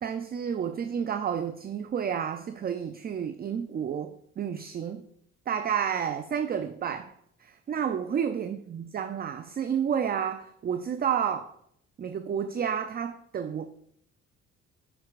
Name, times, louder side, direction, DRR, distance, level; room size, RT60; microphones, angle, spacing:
voice 1, 0.0-5.1 5.5-7.1 7.4-11.5 12.0-13.7, right 8 dB, 30° right, 0.4 m, -30 dB
7.8 x 5.7 x 2.4 m
cardioid pair, 90°, 30 cm